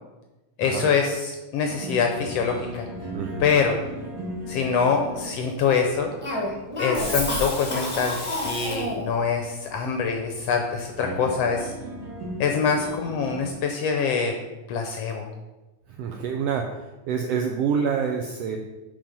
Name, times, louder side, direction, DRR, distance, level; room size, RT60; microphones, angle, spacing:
voice 1, 0.6-2.8 3.4-3.8 4.5-6.1 6.8-11.7 12.4-14.3 14.7-15.3, left 5 dB, 75° left, 4 dB, 1.5 m, -24 dB
sound 1, 1.6-13.5, equal, 60° right, 2.2 m, -38 dB
voice 2, 3.1-3.4 16.0-16.7 17.1-18.6, right 6 dB, 80° right, 3 dB, 1.4 m, -26 dB
Cough, 6.2-9.1, left 1 dB, 25° left, 0.6 m, -28 dB
7.2 x 5.1 x 5.4 m, 1.1 s
omnidirectional pair, 3.4 m